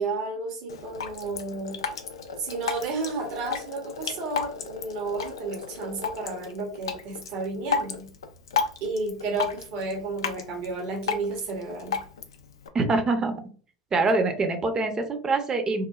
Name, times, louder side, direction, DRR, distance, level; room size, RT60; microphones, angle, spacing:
voice 1, 0.0-1.8 2.4-8.1 8.8-12.0, right 3 dB, 55° right, 1 dB, 0.8 m, -32 dB
Drip, 0.7-12.7, left 6 dB, 80° left, 0.3 m, -34 dB
voice 2, 12.7-13.4 13.9-15.9, right 3 dB, 25° right, 6 dB, 0.7 m, -24 dB
3.0 x 2.2 x 2.3 m, 0.42 s
hypercardioid pair, 80°, 3 cm